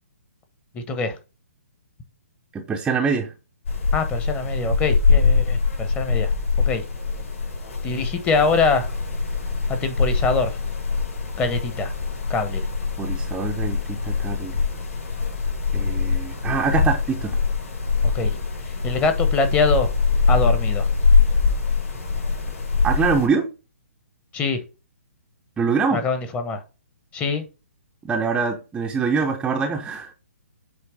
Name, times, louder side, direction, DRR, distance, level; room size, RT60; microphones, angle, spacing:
voice 1, 0.7-1.2 3.9-6.3 6.7-6.8 7.8-8.9 9.8-10.6 11.4-11.9 12.3-12.7 18.1-18.4 18.8-19.9 20.3-20.9 24.3-24.6 25.9-26.6 27.1-27.4, left 4 dB, 15° left, 1.1 m, -23 dB
voice 2, 2.5-3.3 13.0-14.5 15.7-17.4 22.8-23.5 25.6-26.0 28.1-30.1, right 5 dB, 10° right, 0.7 m, -24 dB
sound 1, 3.6-23.3, left 4 dB, 65° left, 3.8 m, -23 dB
8.3 x 3.2 x 4.6 m
hypercardioid pair, 135°, 8 cm